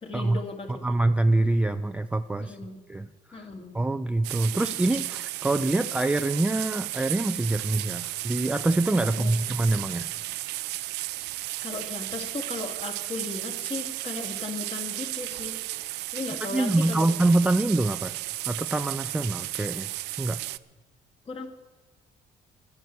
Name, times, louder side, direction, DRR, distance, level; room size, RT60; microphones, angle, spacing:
voice 1, 0.0-0.9 2.4-2.8 3.3-3.8 9.2-9.5 11.6-15.5 16.1-17.1 21.3-21.5, left 3 dB, 35° left, 3 dB, 2.2 m, -36 dB
voice 2, 0.7-2.6 2.9-3.4 3.7-10.1 16.5-18.2 18.4-19.9 20.2-20.4, right 2 dB, 5° right, 9 dB, 0.4 m, -25 dB
sound 1, 4.2-20.6, right 18 dB, 85° right, 0.4 m, -34 dB
11.0 x 10.5 x 8.2 m, 1.2 s
cardioid pair, 110°, 17 cm